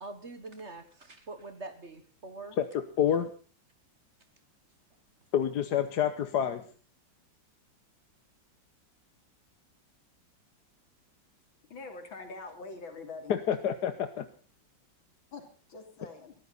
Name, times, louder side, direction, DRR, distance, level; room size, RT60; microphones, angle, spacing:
voice 1, 0.0-2.6, right 3 dB, 40° right, 10 dB, 1.6 m, -44 dB
voice 2, 3.0-3.3 5.3-6.6 13.5-14.2, left 9 dB, 60° left, 10 dB, 1.4 m, -28 dB
voice 3, 11.7-13.3 15.3-16.4, left 3 dB, 85° left, 5 dB, 3.9 m, -44 dB
22.0 x 14.5 x 4.1 m, 0.40 s
omnidirectional pair, 2.1 m